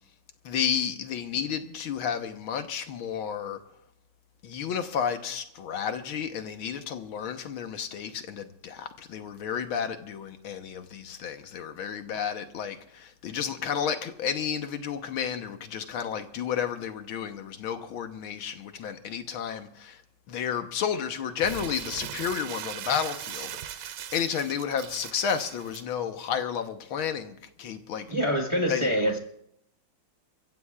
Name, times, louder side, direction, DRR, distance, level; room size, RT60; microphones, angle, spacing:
voice 1, 0.4-3.6 4.4-20.0 20.3-28.1 28.7-29.2, left 7 dB, 80° left, 1.9 m, -32 dB
Crumpling crinkling, 21.4-25.8, right 11 dB, 90° right, 1.6 m, -39 dB
voice 2, 28.1-29.2, equal, 15° right, 1.3 m, -25 dB
30.0 x 15.0 x 2.4 m
omnidirectional pair, 2.3 m